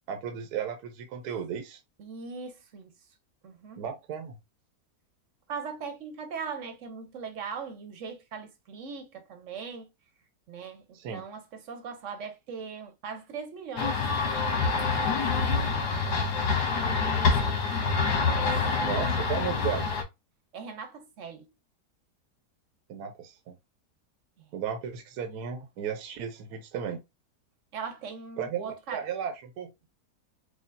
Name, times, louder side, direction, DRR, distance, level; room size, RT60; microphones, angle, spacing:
voice 1, 0.1-1.8 3.8-4.4 10.9-11.2 18.8-19.9 22.9-23.5 24.5-27.0 28.4-29.7, right 8 dB, 80° right, 1.2 m, -34 dB
voice 2, 2.0-2.9 3.4-3.8 5.5-9.9 10.5-14.0 14.5-14.9 15.5-15.9 17.2-18.9 20.5-21.4 24.4-24.5 27.7-29.0, right 5 dB, 55° right, 1.1 m, -40 dB
sound 1, 13.8-20.0, left 4 dB, 80° left, 1.4 m, -26 dB
5.0 x 2.4 x 2.6 m
omnidirectional pair, 1.7 m